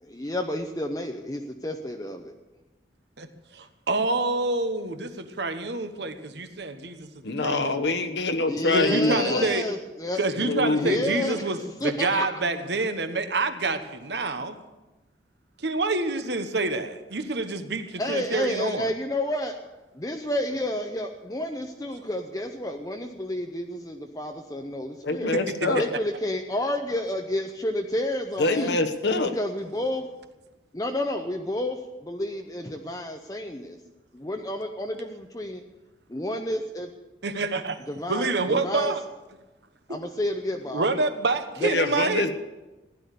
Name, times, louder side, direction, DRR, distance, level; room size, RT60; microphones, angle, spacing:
voice 1, 0.0-2.3 8.5-10.2 10.7-12.4 18.0-19.5 19.9-25.3 25.7-28.8 29.2-30.1 30.7-33.8 34.1-35.6 36.1-36.9 37.9-38.9 39.9-40.9 41.6-41.7, left 1 dB, 20° left, 3 dB, 0.8 m, -30 dB
voice 2, 3.5-7.1 7.4-7.8 8.7-9.6 10.2-14.6 15.6-18.9 25.3-25.8 37.2-37.8 38.1-39.0 40.7-42.2, right 3 dB, 65° right, 9 dB, 1.3 m, -27 dB
voice 3, 7.2-9.5 10.4-11.1 25.0-25.9 28.4-29.3 41.6-42.4, left 2 dB, 70° left, 6 dB, 1.2 m, -25 dB
16.0 x 11.0 x 6.8 m, 1.1 s
head